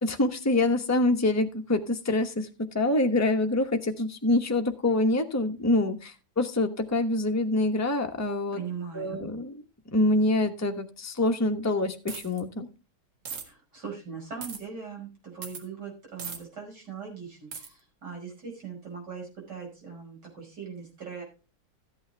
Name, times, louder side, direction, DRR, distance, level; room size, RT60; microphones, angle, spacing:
voice 1, 0.0-8.6 8.9-9.6 9.9-12.7, left 2 dB, 10° left, 4 dB, 0.8 m, -26 dB
voice 2, 8.5-9.2 13.5-21.2, right 6 dB, 55° right, 0 dB, 6.2 m, -40 dB
Dropping Coins, 12.1-12.4 13.3-13.4 14.4-14.6 15.4-15.6 16.2-16.4 17.5-17.7, right 6 dB, 75° right, 2.5 m, -37 dB
14.0 x 8.7 x 3.4 m, 0.31 s
omnidirectional pair, 2.1 m